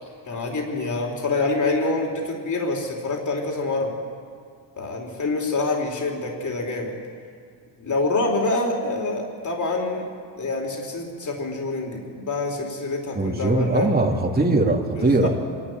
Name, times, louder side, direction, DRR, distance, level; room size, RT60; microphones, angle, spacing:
voice 1, 0.3-3.9 4.8-7.0 7.8-10.0 10.3-13.9 15.0-15.3, left 3 dB, 40° left, 0 dB, 4.2 m, -26 dB
voice 2, 13.1-15.3, right 2 dB, 20° right, 0 dB, 3.2 m, -20 dB
24.5 x 12.0 x 9.6 m, 2.2 s
cardioid pair, 80°, 46 cm